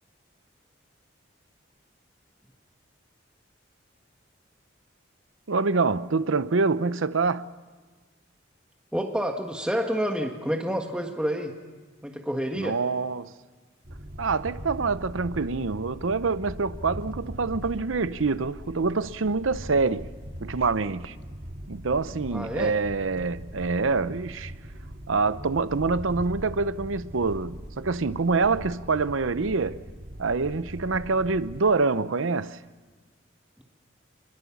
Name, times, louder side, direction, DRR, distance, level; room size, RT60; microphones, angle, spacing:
voice 1, 5.5-7.4 12.6-13.3 14.2-20.1 20.4-21.2 21.7-24.5 25.1-29.8 30.2-32.6, right 4 dB, 85° right, 0.7 m, -26 dB
voice 2, 8.9-11.5 12.0-12.8 22.3-22.7, equal, 5° right, 1.5 m, -28 dB
sound 1, 13.8-31.6, equal, 45° right, 2.1 m, -41 dB
26.0 x 21.5 x 7.2 m
head